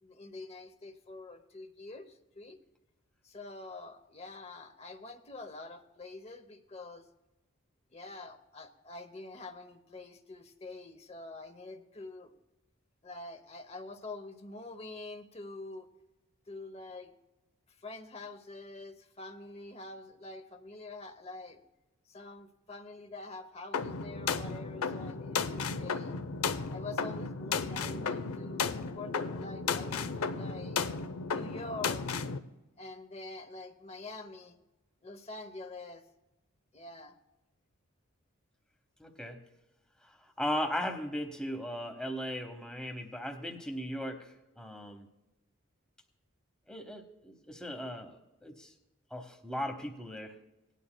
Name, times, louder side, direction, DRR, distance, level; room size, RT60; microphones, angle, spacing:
voice 1, 0.0-2.6 3.2-7.0 7.9-12.3 13.0-15.9 16.5-17.1 17.8-21.6 22.1-26.1 26.7-30.8 31.3-32.0 32.8-34.6 35.0-36.0 36.7-37.1, left 2 dB, 30° left, 9 dB, 0.8 m, -46 dB
sound 1, 23.7-32.4, left 5 dB, 90° left, 0.6 m, -34 dB
voice 2, 39.0-39.4 40.0-40.1 40.4-45.1 46.7-48.2 48.4-48.7 49.1-50.3, equal, 5° left, 4 dB, 0.9 m, -37 dB
18.5 x 11.0 x 2.2 m, 1.0 s
head